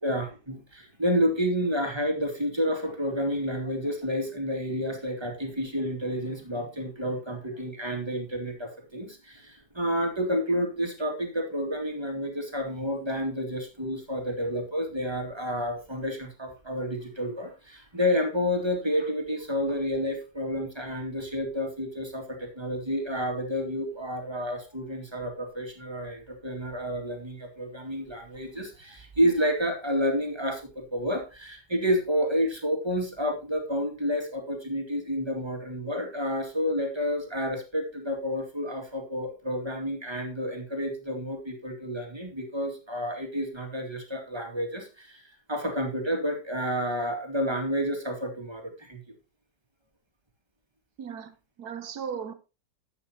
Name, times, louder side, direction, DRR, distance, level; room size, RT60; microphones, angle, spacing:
voice 1, 0.0-49.0, equal, 15° right, 3 dB, 2.2 m, -30 dB
voice 2, 51.0-52.3, right 7 dB, 65° right, 12 dB, 1.5 m, -37 dB
12.0 x 8.1 x 2.8 m, 0.30 s
omnidirectional pair, 1.9 m